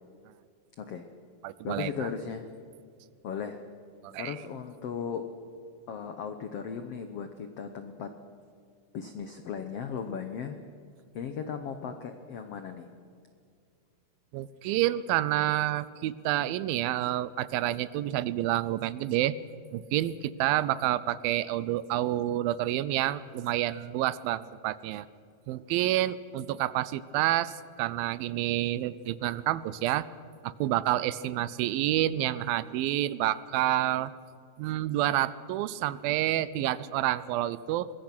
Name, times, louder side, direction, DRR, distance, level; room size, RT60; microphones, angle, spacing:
voice 1, 0.8-1.1 1.6-2.5 3.2-3.6 4.2-5.2 5.9-8.1 8.9-10.6 11.1-12.9, left 7 dB, 75° left, 7 dB, 1.4 m, -36 dB
voice 2, 1.4-2.1 4.0-4.4 14.3-19.4 19.7-25.1 25.5-30.1 30.4-34.1 34.6-37.9, right 14 dB, 80° right, 17 dB, 2.4 m, -29 dB
23.5 x 21.0 x 6.1 m, 2.4 s
omnidirectional pair, 4.3 m